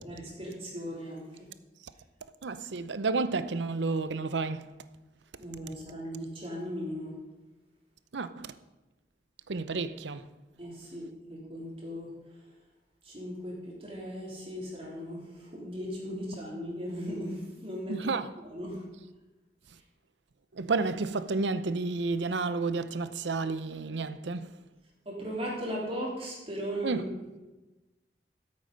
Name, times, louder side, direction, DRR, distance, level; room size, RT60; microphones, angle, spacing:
voice 1, 0.0-1.5 5.4-7.2 10.6-12.1 13.0-18.0 18.4-18.8 25.0-27.0, equal, 35° right, 3.3 m, -37 dB
voice 2, 2.4-4.7 8.1-8.5 9.5-10.3 17.9-18.3 20.5-24.5 26.8-27.1, right 3 dB, 90° right, 0.7 m, -31 dB
13.0 x 8.6 x 5.3 m
head